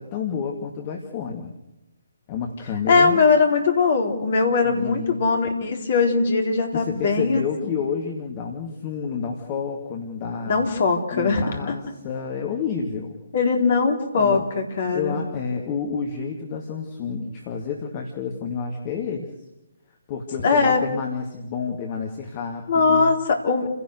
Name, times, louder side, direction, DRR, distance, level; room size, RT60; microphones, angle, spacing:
voice 1, 0.0-1.5 2.3-3.2 4.6-5.2 6.7-10.6 11.1-13.2 14.2-14.5 14.9-19.3 20.1-23.1, left 6 dB, 30° left, 2 dB, 2.5 m, -30 dB
voice 2, 2.9-7.4 10.5-11.4 13.3-15.2 20.4-20.8 22.7-23.7, left 4 dB, 45° left, 4 dB, 3.9 m, -20 dB
30.0 x 17.0 x 6.6 m, 0.96 s
figure-of-eight pair, 135°, 0 cm